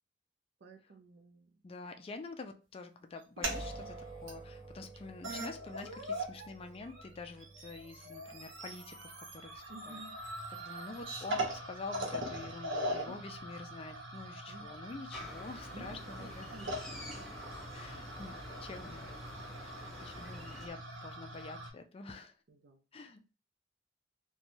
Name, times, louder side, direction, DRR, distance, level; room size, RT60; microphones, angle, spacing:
voice 1, 0.6-1.6 9.7-10.2 13.1-13.4 14.5-14.7 15.7-17.3 22.5-22.8, right 2 dB, 60° right, 6 dB, 0.5 m, -53 dB
voice 2, 1.6-10.0 10.6-16.5 17.7-18.3 18.6-19.1 19.6-22.4 22.9-23.2, left 3 dB, 30° left, 5 dB, 0.4 m, -47 dB
sound 1, 3.2-3.6 4.3-4.4 4.9-5.0 5.2-6.5 6.8-21.7, right 1 dB, 85° right, 0.8 m, -41 dB
sound 2, 3.4-16.5, right 1 dB, 20° right, 1.2 m, -52 dB
sound 3, 15.1-20.7, left 1 dB, ahead, 0.7 m, -48 dB
3.0 x 2.2 x 2.6 m, 0.33 s
head